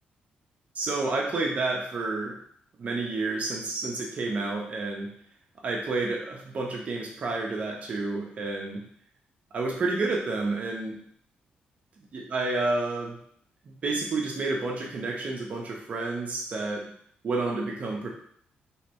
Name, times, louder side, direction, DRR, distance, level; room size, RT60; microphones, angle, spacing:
voice 1, 0.7-2.3 2.8-5.1 5.6-8.8 9.5-11.0 12.1-13.2 13.6-16.9 17.2-18.1, right 3 dB, 45° right, -1 dB, 0.9 m, -30 dB
3.2 x 3.2 x 3.0 m, 0.62 s
cardioid pair, 135°, 3 cm